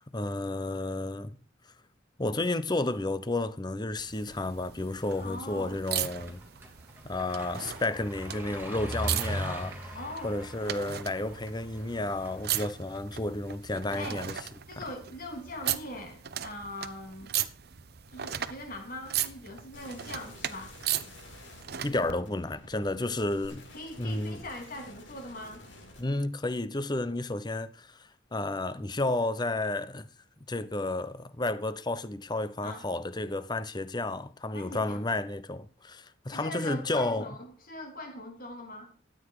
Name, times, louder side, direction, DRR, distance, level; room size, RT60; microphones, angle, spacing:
voice 1, 0.1-1.4 2.2-6.4 7.0-9.7 10.2-14.4 14.8-14.9 21.8-23.6 24.0-24.4 26.0-28.0 28.3-30.1 30.5-37.3, left 2 dB, 20° left, 0.8 m, -31 dB
sound 1, 4.0-22.1 23.4-23.5, right 11 dB, 55° right, 0.8 m, -37 dB
sound 2, 5.0-12.5, right 1 dB, 10° right, 2.6 m, -40 dB
voice 2, 5.2-5.8 9.9-10.4 14.0-14.2 14.7-17.3 18.1-20.7 23.7-25.6 32.6-32.9 34.5-35.0 36.3-38.9, left 1 dB, 45° left, 3.3 m, -41 dB
sound 3, 19.7-26.0, left 2 dB, 75° left, 4.9 m, -51 dB
13.5 x 9.1 x 4.8 m
head